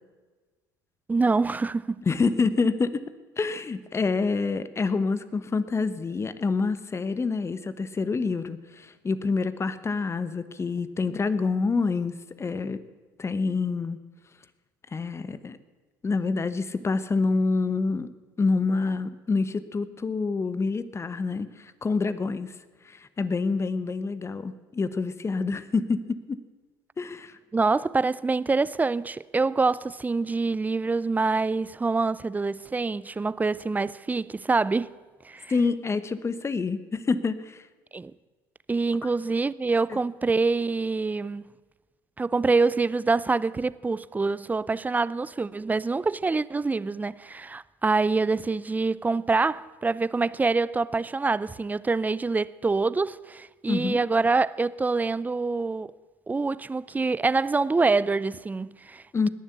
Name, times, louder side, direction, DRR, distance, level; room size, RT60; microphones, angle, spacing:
voice 1, 1.1-2.0 27.5-34.9 35.2-35.5 37.9-38.1 38.7-41.4 42.2-55.9 56.3-59.0, right 3 dB, 15° right, 0.5 m, -25 dB
voice 2, 2.1-3.0 3.4-12.8 13.2-14.0 14.9-15.6 16.0-18.1 18.4-22.5 22.8-26.4 27.0-27.4 35.5-37.6 39.9-40.0 53.7-54.0 59.1-59.3, left 4 dB, 25° left, 1.0 m, -27 dB
20.0 x 7.4 x 8.1 m
hypercardioid pair, 70°, 11 cm